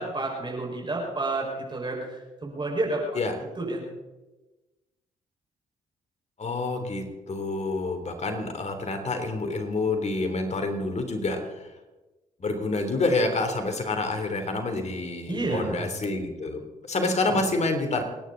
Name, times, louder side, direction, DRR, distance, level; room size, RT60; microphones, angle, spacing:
voice 1, 0.0-3.0 3.6-3.8 15.3-15.8 17.3-17.4, right 2 dB, 30° right, -1 dB, 5.4 m, -30 dB
voice 2, 6.4-11.7 12.4-18.1, left 2 dB, 45° left, 5 dB, 3.4 m, -28 dB
28.5 x 10.0 x 4.0 m, 1.1 s
supercardioid pair, 50°, 15 cm